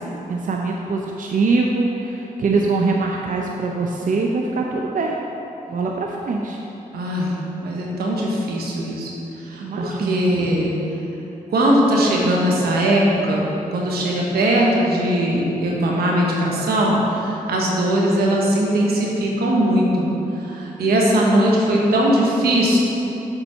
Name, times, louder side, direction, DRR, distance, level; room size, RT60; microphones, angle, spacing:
voice 1, 0.0-5.2 5.7-6.6 9.6-10.3, right 3 dB, 60° right, 0 dB, 0.6 m, -23 dB
voice 2, 6.9-7.3 7.6-9.1 9.5-10.7 11.5-13.5 13.7-20.1 20.5-22.8, right 1 dB, 85° right, -3 dB, 1.1 m, -19 dB
6.9 x 4.1 x 5.6 m, 3.0 s
supercardioid pair, 45°, 16 cm